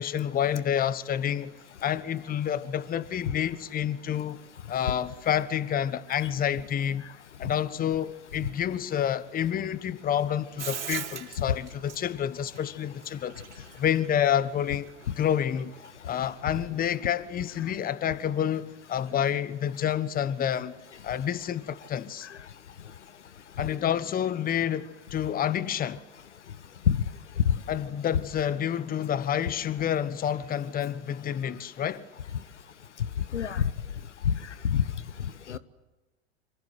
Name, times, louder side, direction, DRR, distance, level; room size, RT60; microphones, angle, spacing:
voice 1, 0.0-1.5 1.8-4.4 4.7-7.0 7.4-13.4 13.7-14.9 15.2-15.7 16.0-22.3 23.6-26.0 27.7-32.1, left 9 dB, 25° left, 1.2 m, -28 dB
Bathtub (filling or washing), 10.6-16.0, right 8 dB, 80° right, 5.2 m, -40 dB
voice 2, 33.3-33.7 34.2-34.9 35.2-35.6, left 8 dB, 80° left, 1.1 m, -26 dB
27.0 x 26.5 x 8.0 m
figure-of-eight pair, 90°, 35 cm